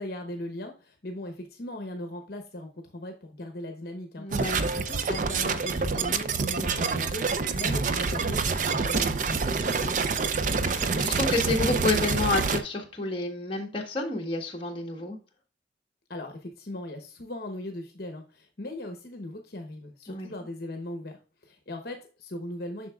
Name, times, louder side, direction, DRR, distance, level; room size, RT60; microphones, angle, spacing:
voice 1, 0.0-9.5 16.1-22.9, left 1 dB, 55° left, 5 dB, 0.9 m, -39 dB
voice 2, 4.2-4.6 9.8-10.0 10.6-15.2 20.1-20.3, left 2 dB, 30° left, 0 dB, 1.3 m, -30 dB
sound 1, 4.3-12.6, right 4 dB, 45° right, 0.5 m, -27 dB
7.5 x 6.2 x 2.3 m, 0.35 s
head